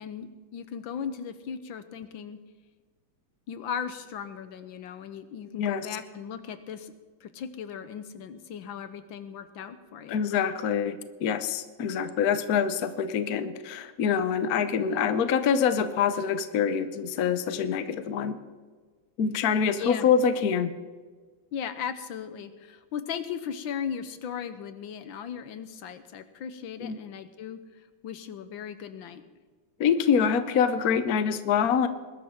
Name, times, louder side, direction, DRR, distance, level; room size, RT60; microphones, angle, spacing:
voice 1, 0.0-2.4 3.5-6.9 7.2-10.2 19.8-20.1 21.5-27.6 28.0-29.2, left 7 dB, 80° left, 11 dB, 1.7 m, -37 dB
voice 2, 10.1-18.4 19.2-20.7 26.8-27.0 29.8-31.9, left 7 dB, 55° left, 11 dB, 1.2 m, -25 dB
21.5 x 12.5 x 3.7 m, 1.5 s
omnidirectional pair, 2.1 m